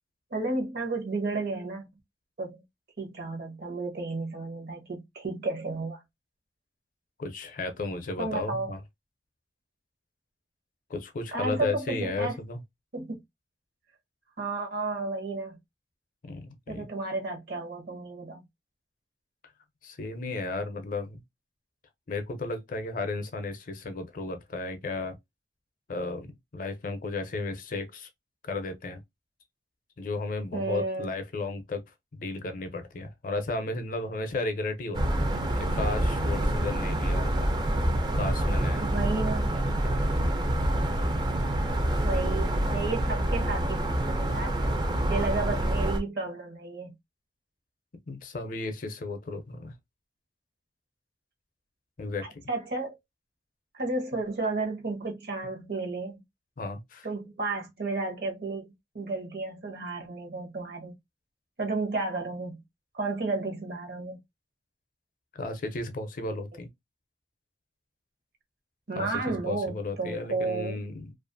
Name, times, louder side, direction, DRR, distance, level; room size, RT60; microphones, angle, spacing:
voice 1, 0.3-1.9 2.4-2.6 3.0-6.0 8.2-8.7 11.3-12.4 12.9-13.2 14.4-15.6 16.7-18.4 30.5-31.1 38.8-39.5 42.0-44.6 45.1-46.9 52.5-53.0 53.7-56.2 57.0-60.9 61.6-62.6 62.9-64.2 68.9-70.8, right 3 dB, 60° right, 0.8 m, -32 dB
voice 2, 7.2-8.8 10.9-12.6 16.2-16.9 19.8-21.2 22.1-25.2 25.9-28.1 28.4-29.0 30.0-31.8 32.1-35.4 35.7-37.5 38.1-39.0 39.8-40.0 45.3-45.5 48.1-49.7 52.0-52.4 56.6-57.1 65.3-66.7 69.0-71.1, left 3 dB, 50° left, 0.5 m, -34 dB
sound 1, 34.9-46.0, right 1 dB, 25° right, 0.4 m, -27 dB
2.4 x 2.4 x 2.5 m
head